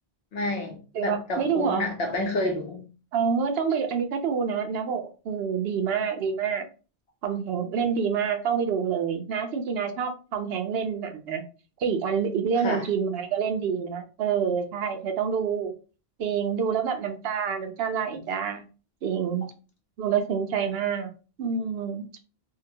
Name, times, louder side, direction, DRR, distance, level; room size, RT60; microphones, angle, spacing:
voice 1, 0.3-2.9 12.6-12.8, left 1 dB, 75° left, 3 dB, 1.0 m, -29 dB
voice 2, 0.9-1.9 3.1-6.7 7.2-11.4 11.8-15.7 16.2-18.7 19.0-19.5 20.0-21.1 21.4-22.1, right 6 dB, 75° right, 7 dB, 0.8 m, -27 dB
2.7 x 2.2 x 2.7 m, 0.35 s
omnidirectional pair, 1.1 m